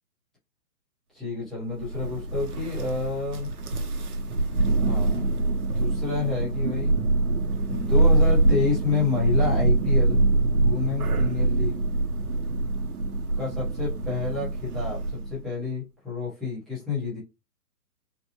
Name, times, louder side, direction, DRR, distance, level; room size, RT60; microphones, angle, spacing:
voice 1, 1.1-3.5 4.8-6.9 7.7-10.2 10.6-11.8 13.4-17.2, left 5 dB, ahead, -11 dB, 0.8 m, -29 dB
Thunder, 1.8-15.4, right 2 dB, 60° right, 1.0 m, -24 dB
4.2 x 2.1 x 2.9 m, 0.27 s
hypercardioid pair, 155°, 49 cm